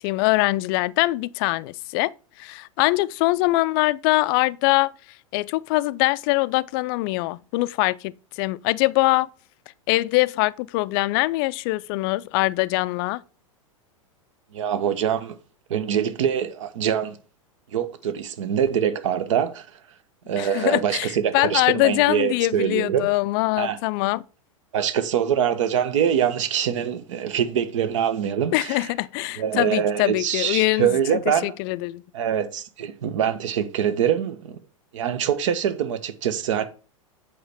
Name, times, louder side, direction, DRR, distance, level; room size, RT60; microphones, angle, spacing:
voice 1, 0.0-2.1 2.4-9.3 9.9-13.2 20.4-24.2 28.5-32.0, left 21 dB, 45° left, 0.4 m, -23 dB
voice 2, 14.5-15.3 15.7-17.2 17.7-19.7 20.3-23.1 23.6-23.8 24.7-28.8 29.4-31.5 32.1-34.5 34.9-36.7, right 9 dB, 60° right, 1.1 m, -24 dB
8.1 x 5.0 x 4.4 m
figure-of-eight pair, 95°, 17 cm